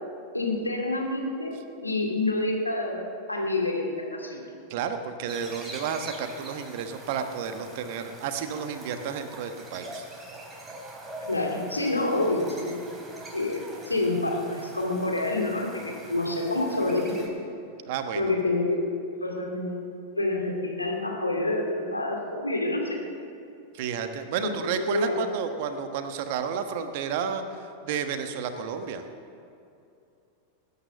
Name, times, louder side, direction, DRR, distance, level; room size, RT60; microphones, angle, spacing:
voice 1, 0.3-1.5 1.8-4.5 11.3-12.8 13.3-17.3 18.1-19.9 20.2-23.0 24.4-25.2, left 2 dB, 85° left, 0 dB, 2.4 m, -28 dB
voice 2, 4.7-10.1 17.9-18.3 23.7-29.0, right 7 dB, 50° right, 8 dB, 1.2 m, -31 dB
sound 1, 5.3-17.3, right 1 dB, 15° right, 2.9 m, -44 dB
20.0 x 9.9 x 6.6 m, 2.6 s
figure-of-eight pair, 90°, 0 cm